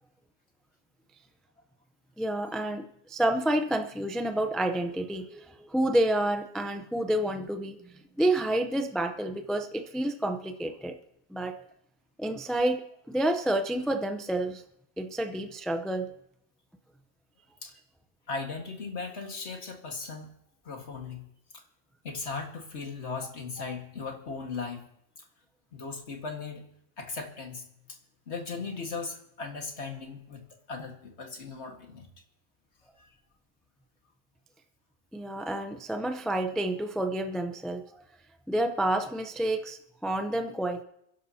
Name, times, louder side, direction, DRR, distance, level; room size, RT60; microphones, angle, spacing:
voice 1, 2.2-7.8 8.2-10.9 11.3-11.5 12.2-14.6 15.0-16.1 35.1-38.0 38.5-40.8, right 1 dB, ahead, 6 dB, 0.5 m, -29 dB
voice 2, 18.3-20.4 20.6-21.3 21.5-21.6 22.0-24.9 25.2-25.3 25.7-28.0 28.3-32.1 33.0-33.1, left 4 dB, 70° left, 3 dB, 2.0 m, -38 dB
27.0 x 11.0 x 2.8 m, 0.75 s
omnidirectional pair, 1.2 m